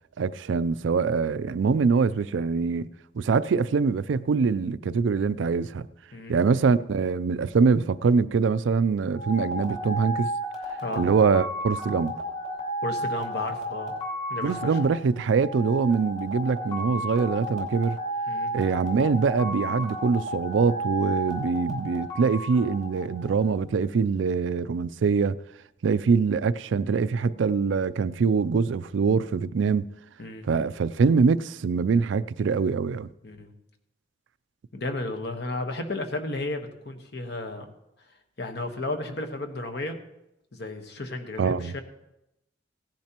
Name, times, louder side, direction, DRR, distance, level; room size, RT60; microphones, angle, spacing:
voice 1, 0.2-2.9 3.2-5.9 6.3-10.3 11.0-12.1 14.4-18.0 18.5-25.4 25.8-29.9 30.4-33.1 41.4-41.7, right 5 dB, 75° right, 0.4 m, -24 dB
sound 1, 9.1-23.6, equal, 35° left, 3.0 m, -33 dB
voice 2, 10.8-11.1 12.8-13.9 14.3-14.8 18.3-18.6 30.2-30.5 33.2-33.5 34.7-37.7 38.4-40.0 40.5-41.8, left 2 dB, 60° left, 1.2 m, -33 dB
16.5 x 10.5 x 2.9 m
head